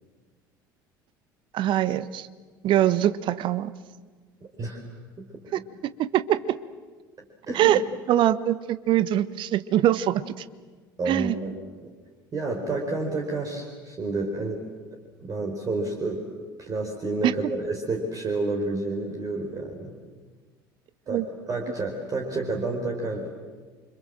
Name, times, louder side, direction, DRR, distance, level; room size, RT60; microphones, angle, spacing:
voice 1, 1.5-2.3 2.6-3.7 5.5-5.6 6.0-6.6 7.5-7.8 8.1-10.2 11.1-11.4 17.2-17.3 21.1-21.2, right 12 dB, 45° right, 14 dB, 1.2 m, -23 dB
voice 2, 7.5-7.8 11.0-11.6 11.8-11.9 12.3-14.6 15.2-16.3 16.6-19.9 21.1-23.3, right 2 dB, 30° right, 2 dB, 4.6 m, -30 dB
29.5 x 26.0 x 7.7 m, 1.4 s
figure-of-eight pair, 65°, 12 cm